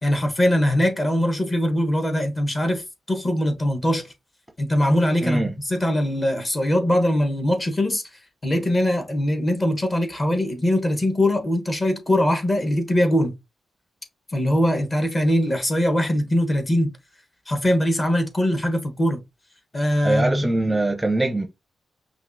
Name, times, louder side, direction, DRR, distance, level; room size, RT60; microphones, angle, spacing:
voice 1, 0.0-4.1 4.6-13.3 14.3-16.9 17.5-19.2 19.7-20.5, left 1 dB, 25° left, 1.1 m, -22 dB
voice 2, 20.0-21.5, right 2 dB, 10° right, 0.7 m, -22 dB
5.7 x 2.4 x 2.7 m
cardioid pair, 115°, 0 cm